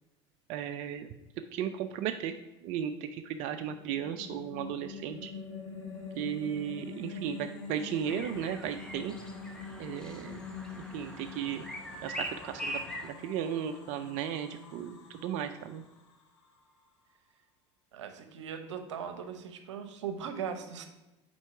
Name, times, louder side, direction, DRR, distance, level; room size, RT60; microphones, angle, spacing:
voice 1, 0.5-1.1 1.5-2.3 2.6-5.3 6.2-9.1 9.8-10.5 10.9-11.6 12.0-15.8, right 9 dB, 55° right, 8 dB, 0.4 m, -35 dB
sound 1, 3.3-16.7, left 5 dB, 80° left, 0.9 m, -45 dB
sound 2, 8.1-13.1, equal, 5° left, 0.9 m, -42 dB
voice 2, 17.9-20.9, right 7 dB, 85° right, 7 dB, 0.7 m, -39 dB
4.4 x 4.4 x 5.6 m, 1.0 s
hypercardioid pair, 85°, 15 cm